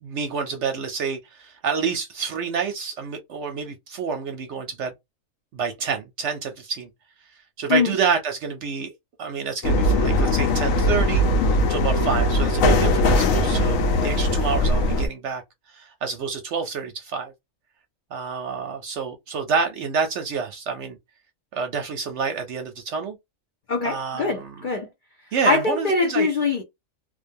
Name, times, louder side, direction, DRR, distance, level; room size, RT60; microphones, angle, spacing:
voice 1, 0.0-4.9 5.5-6.9 7.6-8.9 9.2-15.4 15.7-17.3 18.1-21.0 21.5-23.2 23.8-24.5 25.3-26.3, right 5 dB, 65° right, 0.8 m, -28 dB
sound 1, 9.6-15.1, left 1 dB, 75° left, 1.0 m, -20 dB
voice 2, 23.7-24.9 25.4-26.6, left 4 dB, 55° left, 0.5 m, -23 dB
2.4 x 2.2 x 2.6 m
omnidirectional pair, 1.4 m